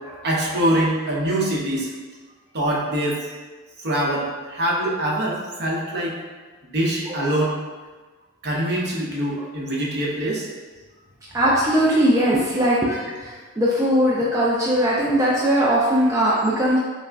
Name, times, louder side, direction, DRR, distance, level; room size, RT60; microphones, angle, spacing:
voice 1, 0.2-1.9 2.5-3.2 3.8-6.1 6.7-7.5 8.4-10.5, right 1 dB, 50° right, -3 dB, 0.7 m, -23 dB
voice 2, 11.3-16.8, equal, 15° right, -6 dB, 0.4 m, -20 dB
5.5 x 2.1 x 2.5 m, 1.3 s
head